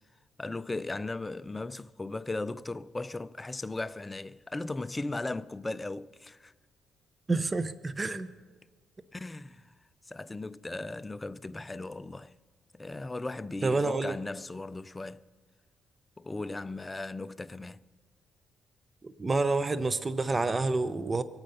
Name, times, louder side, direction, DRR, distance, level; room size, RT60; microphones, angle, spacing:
voice 1, 0.4-6.5 9.1-9.7 10.1-12.3 12.7-15.3 16.2-17.8, left 2 dB, 20° left, 0.4 m, -37 dB
voice 2, 7.3-8.3 13.6-14.2 19.0-21.2, right 3 dB, 25° right, 0.6 m, -28 dB
24.0 x 8.9 x 5.6 m
cardioid pair, 90°, 0 cm